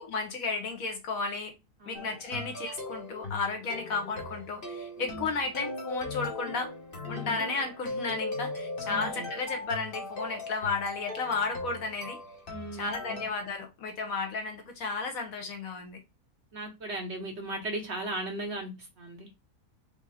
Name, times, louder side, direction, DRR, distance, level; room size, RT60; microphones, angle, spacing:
voice 1, 0.0-1.5 1.9-6.7 7.1-12.2 12.7-16.0, left 4 dB, 60° left, 1.4 m, -33 dB
sound 1, 1.9-13.3, left 2 dB, 40° left, 1.1 m, -39 dB
voice 2, 7.1-7.4 8.8-9.3 12.5-13.2 16.5-19.3, right 1 dB, 50° right, 1.0 m, -37 dB
4.9 x 2.9 x 3.4 m
omnidirectional pair, 1.7 m